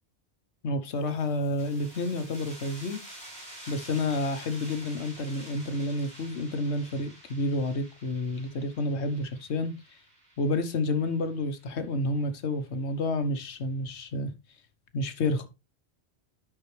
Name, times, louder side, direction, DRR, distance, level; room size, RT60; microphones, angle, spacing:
voice 1, 0.6-3.0 3.7-9.7 10.4-14.3 14.9-15.5, left 2 dB, 85° left, 1.3 m, -30 dB
sound 1, 0.8-12.2, right 1 dB, 5° left, 4.5 m, -49 dB
9.8 x 5.9 x 3.2 m
omnidirectional pair, 1.1 m